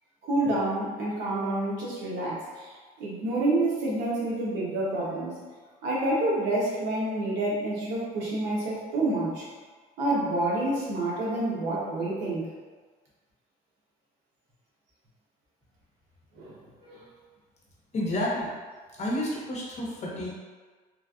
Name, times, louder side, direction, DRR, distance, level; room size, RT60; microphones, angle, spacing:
voice 1, 0.2-2.7 3.0-5.4 5.8-9.4 10.0-12.5 16.3-17.0, right 2 dB, 80° right, -5 dB, 1.0 m, -28 dB
voice 2, 17.9-18.5 19.0-20.3, left 1 dB, 40° left, -4 dB, 0.9 m, -30 dB
3.2 x 2.4 x 2.3 m, 1.4 s
cardioid pair, 110°, 17 cm